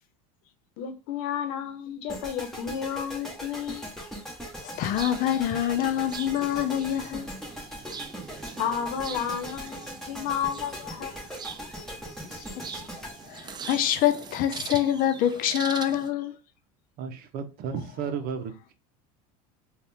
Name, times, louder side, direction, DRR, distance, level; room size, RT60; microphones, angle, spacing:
voice 1, 0.8-3.8 8.6-11.3, left 8 dB, 70° left, 0.9 m, -32 dB
sound 1, 2.1-14.3, equal, ahead, 1.5 m, -40 dB
voice 2, 4.6-7.3 12.3-16.4, left 11 dB, 50° left, 0.5 m, -26 dB
sound 2, 4.9-16.1, right 7 dB, 25° right, 0.4 m, -42 dB
voice 3, 17.0-18.7, right 6 dB, 55° right, 0.7 m, -33 dB
4.1 x 2.4 x 3.5 m
supercardioid pair, 110°, 19 cm